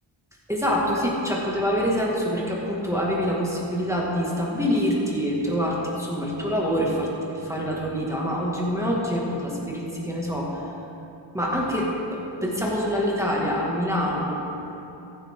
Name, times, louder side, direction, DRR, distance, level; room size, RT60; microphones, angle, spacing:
voice 1, 0.5-10.6 11.3-14.3, equal, 5° right, -4 dB, 2.1 m, -25 dB
14.5 x 11.0 x 3.8 m, 2.8 s
wide cardioid pair, 70°, 49 cm